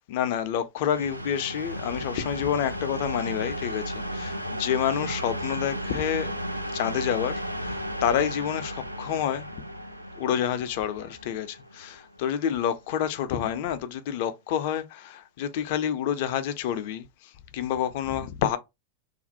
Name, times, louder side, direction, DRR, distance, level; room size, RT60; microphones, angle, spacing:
voice 1, 0.1-6.3 6.7-9.5 10.1-18.6, left 9 dB, 50° left, 0.4 m, -28 dB
sound 1, 0.9-12.5, equal, 85° right, 0.4 m, -34 dB
2.4 x 2.0 x 2.7 m
figure-of-eight pair, 90°, 0 cm